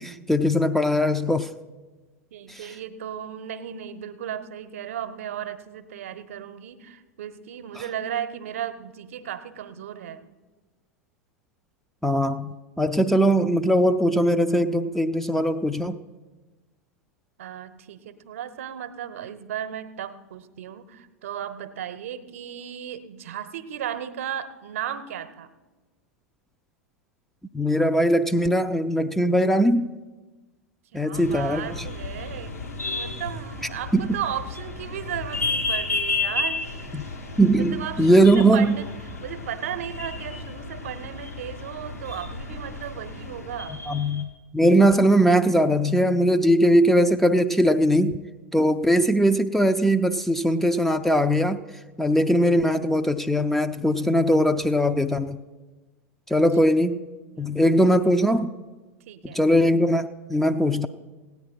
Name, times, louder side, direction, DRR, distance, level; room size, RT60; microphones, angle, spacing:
voice 1, 0.0-1.5 2.5-2.6 12.0-16.0 27.5-29.9 30.9-31.9 33.9-34.2 36.9-37.0 37.4-38.8 43.9-44.3 44.5-48.2 48.5-51.6 52.0-55.4 56.3-57.0 57.4-58.5 59.3-60.9, equal, 5° left, 7 dB, 0.4 m, -20 dB
voice 2, 2.3-10.2 17.4-25.5 30.9-32.6 32.9-37.2 37.5-38.9 39.2-43.8 56.3-56.4 57.3-57.6 59.1-59.4, right 9 dB, 60° right, 12 dB, 0.8 m, -35 dB
sound 1, 31.1-44.2, left 3 dB, 85° left, 1.8 m, -32 dB
16.5 x 9.4 x 4.4 m, 1.2 s
figure-of-eight pair, 85°, 8 cm